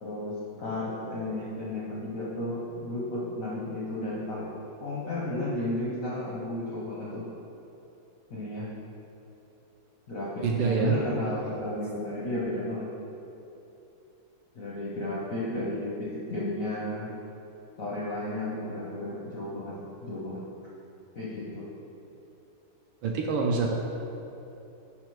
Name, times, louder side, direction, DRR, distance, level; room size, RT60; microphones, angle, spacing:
voice 1, 0.0-4.5 4.8-7.2 8.3-8.7 10.1-12.9 14.6-17.1 17.8-20.5 21.1-21.7, left 1 dB, 65° left, -7 dB, 0.8 m, -33 dB
voice 2, 10.4-10.9 23.0-23.7, right 5 dB, 75° right, 0 dB, 1.2 m, -26 dB
5.9 x 4.3 x 4.5 m, 3.0 s
omnidirectional pair, 2.4 m